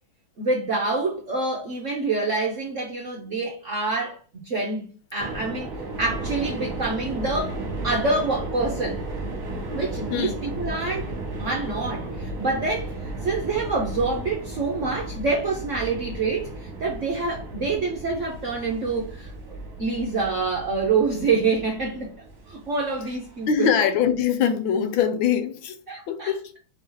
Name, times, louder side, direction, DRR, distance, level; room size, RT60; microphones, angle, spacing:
voice 1, 0.4-4.2 4.4-5.7 6.0-7.6 7.8-9.0 9.7-11.1 11.4-22.1 22.5-23.7 25.9-26.3, right 3 dB, 65° right, 0.8 m, -26 dB
sound 1, 5.2-23.5, right 2 dB, 45° right, 1.4 m, -34 dB
voice 2, 23.5-25.8 26.1-26.6, left 8 dB, 75° left, 1.4 m, -23 dB
5.1 x 2.8 x 3.7 m
omnidirectional pair, 2.3 m